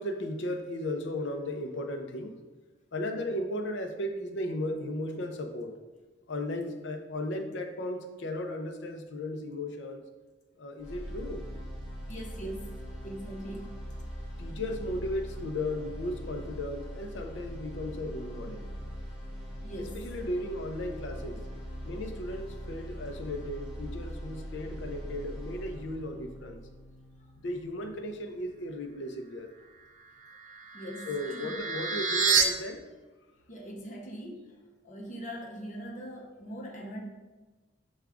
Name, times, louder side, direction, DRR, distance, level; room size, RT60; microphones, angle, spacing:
voice 1, 0.0-2.4 2.9-5.7 6.3-10.0 10.6-11.4 14.4-18.7 20.0-21.4 21.8-26.6 27.4-29.5 31.1-32.8, left 1 dB, 70° left, 5 dB, 0.5 m, -35 dB
sound 1, 10.8-28.8, equal, 5° right, 1.3 m, -41 dB
voice 2, 12.1-12.7 13.0-13.8 14.2-14.3 19.6-20.1 27.2-27.3 30.7-31.6 33.5-37.1, right 1 dB, 40° left, -1 dB, 0.8 m, -41 dB
sound 2, 30.2-32.4, right 6 dB, 40° right, 0.4 m, -29 dB
6.0 x 2.3 x 3.4 m, 1.2 s
head